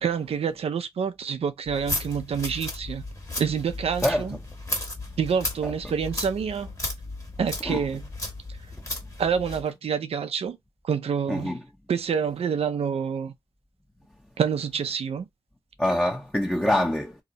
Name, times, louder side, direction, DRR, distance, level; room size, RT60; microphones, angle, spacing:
voice 1, 0.0-3.0 3.4-4.4 5.2-6.7 7.4-8.1 9.2-10.6 10.8-11.6 11.9-13.3 14.4-15.3, right 7 dB, 75° right, 0.5 m, -27 dB
sound 1, 1.7-9.7, left 2 dB, 30° left, 1.3 m, -34 dB
voice 2, 11.3-11.6 15.8-17.1, left 1 dB, 10° left, 0.7 m, -25 dB
2.8 x 2.0 x 3.8 m
cardioid pair, 40°, 10 cm